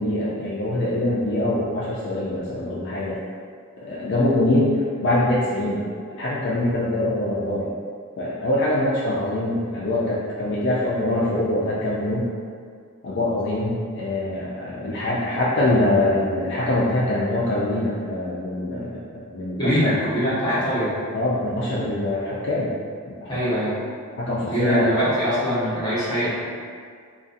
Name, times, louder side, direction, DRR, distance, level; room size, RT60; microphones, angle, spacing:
voice 1, 0.0-3.2 3.8-5.9 6.1-7.7 8.2-12.3 13.0-19.9 21.1-22.7 23.2-23.3 24.2-24.9, left 1 dB, 55° left, -7 dB, 0.3 m, -23 dB
voice 2, 19.6-20.9 23.3-23.7 24.5-26.3, equal, 20° left, -12 dB, 0.9 m, -23 dB
2.5 x 2.3 x 2.5 m, 2.1 s
head